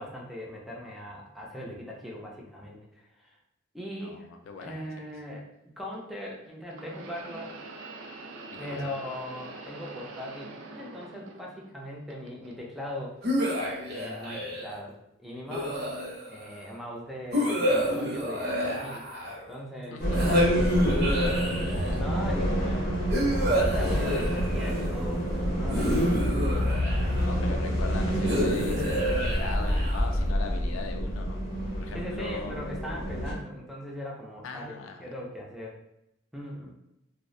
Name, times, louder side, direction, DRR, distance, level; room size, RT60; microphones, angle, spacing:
voice 1, 0.0-3.4 3.7-4.3 4.6-7.6 8.6-13.1 13.9-15.9 16.3-19.1 19.5-20.0 20.6-21.3 21.9-22.9 23.5-26.0 26.4-26.9 31.9-35.8 36.3-36.7, left 1 dB, ahead, -3 dB, 0.4 m, -40 dB
voice 2, 4.0-4.7 8.5-8.9 19.9-20.2 23.8-23.9 26.8-31.4 31.8-32.6 34.4-35.1, left 4 dB, 90° left, 5 dB, 0.3 m, -40 dB
sound 1, 4.6-4.7 6.7-11.8 12.1-12.9 13.6-13.8 14.8-14.9, right 3 dB, 90° right, 0.4 m, -44 dB
sound 2, 13.2-14.8 15.5-16.4 17.3-19.5 20.1-22.0 23.1-24.9 25.7-27.3 28.2-30.2, equal, 55° right, 0.7 m, -28 dB
sound 3, 20.0-33.3, equal, 50° left, 0.6 m, -28 dB
2.4 x 2.0 x 2.5 m, 0.84 s
head